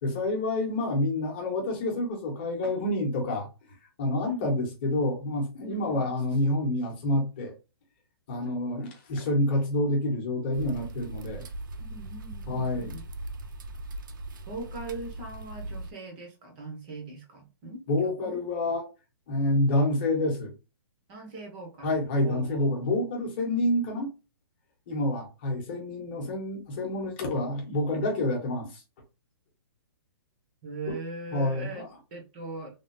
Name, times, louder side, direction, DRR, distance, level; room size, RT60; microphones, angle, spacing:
voice 1, 0.0-3.5 4.0-7.5 8.3-11.4 12.5-13.0 17.9-18.9 19.3-20.5 21.8-24.1 24.9-28.8 30.9-31.0 31.3-31.9, left 1 dB, 25° left, 1.0 m, -28 dB
voice 2, 4.2-4.5 5.7-6.1 11.9-13.0 14.5-18.4 21.1-21.9 22.2-22.6 30.6-31.8 32.1-32.7, right 2 dB, 20° right, 0.8 m, -40 dB
sound 1, 10.5-15.9, right 2 dB, 50° right, 0.5 m, -39 dB
3.4 x 2.4 x 2.6 m
hypercardioid pair, 180°, 14 cm